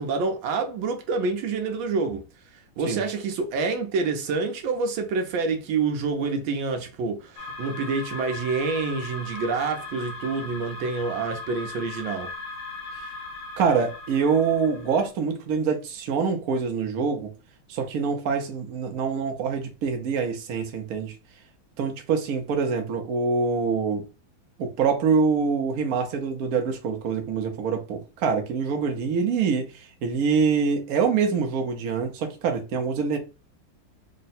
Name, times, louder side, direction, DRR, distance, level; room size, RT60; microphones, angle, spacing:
voice 1, 0.0-2.2 2.5-12.3, right 4 dB, 75° right, 1.5 m, -27 dB
sound 1, 7.4-15.1, left 3 dB, 65° left, 1.5 m, -38 dB
voice 2, 13.6-17.3 17.7-21.2 21.8-24.0 24.6-33.2, right 5 dB, 60° right, 1.0 m, -25 dB
3.7 x 2.2 x 4.1 m
omnidirectional pair, 2.2 m